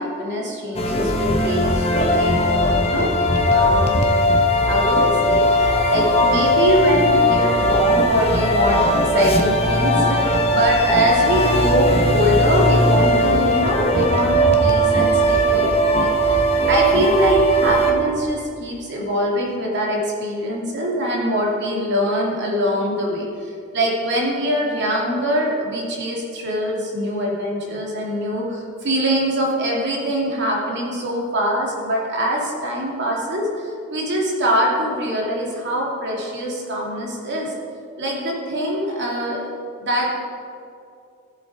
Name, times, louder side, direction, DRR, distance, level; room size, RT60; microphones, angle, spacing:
voice 1, 0.0-3.1 3.5-4.0 4.7-5.5 5.9-37.5 38.0-39.4 39.8-40.1, equal, 55° right, -2 dB, 2.6 m, -23 dB
sound 1, 0.7-17.9, equal, 30° left, 1.2 m, -18 dB
14.5 x 7.7 x 4.8 m, 2.5 s
head